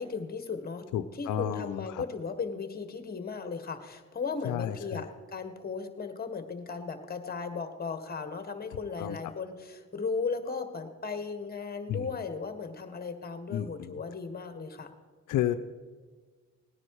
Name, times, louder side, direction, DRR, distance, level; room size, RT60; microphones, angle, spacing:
voice 1, 0.0-0.9 1.1-14.9, left 5 dB, 30° left, 8 dB, 1.6 m, -36 dB
voice 2, 0.9-2.0 4.4-5.1 9.0-9.3 11.9-12.1 13.5-14.0 15.3-15.6, left 11 dB, 85° left, 9 dB, 0.7 m, -32 dB
18.5 x 10.0 x 4.9 m, 1.4 s
cardioid pair, 90°, 30 cm